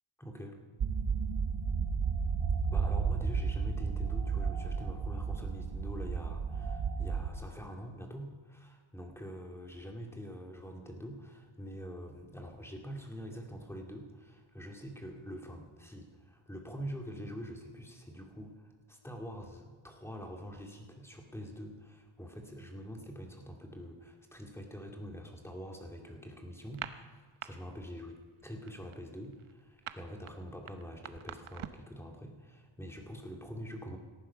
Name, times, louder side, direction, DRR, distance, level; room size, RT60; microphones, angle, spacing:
voice 1, 0.2-0.6 2.7-34.0, equal, 5° left, 2 dB, 2.1 m, -45 dB
sound 1, 0.8-7.3, right 5 dB, 65° right, 1.6 m, -32 dB
sound 2, 26.6-27.5 27.8-28.1 28.4-31.9, right 10 dB, 85° right, 0.9 m, -44 dB
18.5 x 14.0 x 5.6 m, 1.4 s
wide cardioid pair, 155°, 48 cm